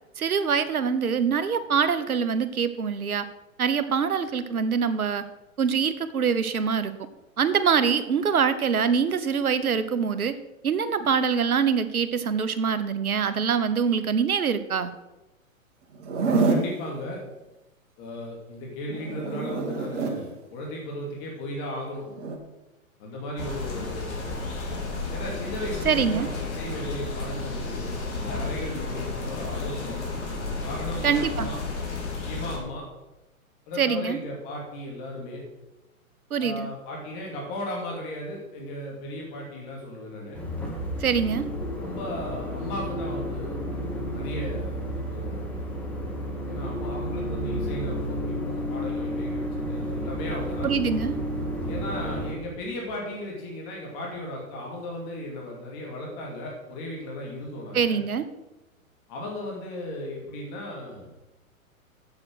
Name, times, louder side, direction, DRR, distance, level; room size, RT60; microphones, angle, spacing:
voice 1, 0.2-3.2 3.6-5.2 5.6-6.9 7.4-10.4 10.6-14.9 25.8-26.3 31.0-31.5 33.8-34.2 36.3-36.7 41.0-41.5 50.6-51.2 57.7-58.2, right 6 dB, 80° right, 12 dB, 0.9 m, -24 dB
Zipper (clothing), 16.0-16.7 18.9-20.2 22.1-22.4, right 3 dB, 55° right, 1.7 m, -26 dB
voice 2, 16.4-17.2 18.0-22.1 23.0-24.4 25.1-31.6 32.1-32.9 33.7-35.4 36.4-40.4 41.8-45.4 46.5-50.7 51.6-58.0 59.1-61.1, left 1 dB, 35° left, -2 dB, 2.5 m, -36 dB
sound 1, 23.4-32.6, left 3 dB, 55° left, 2.8 m, -32 dB
sound 2, 40.3-52.3, equal, 5° left, 1.7 m, -31 dB
7.7 x 7.4 x 6.3 m, 1.0 s
figure-of-eight pair, 115°, 43 cm